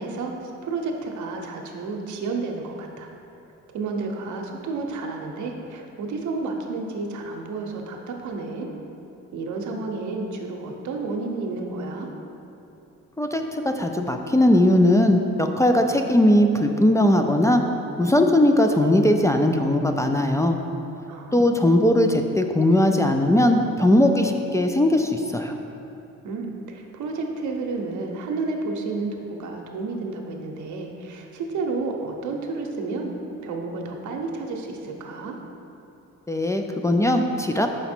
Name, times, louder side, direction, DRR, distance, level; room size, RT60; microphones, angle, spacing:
voice 1, 0.0-3.1 3.7-8.7 9.3-12.1 21.1-21.5 26.2-33.1 33.4-35.4, right 3 dB, 75° right, 2 dB, 0.8 m, -31 dB
voice 2, 13.2-17.6 18.0-20.6 21.3-25.6 36.3-37.7, left 1 dB, 10° left, 4 dB, 0.3 m, -19 dB
5.7 x 5.0 x 4.3 m, 2.9 s
cardioid pair, 90°, 30 cm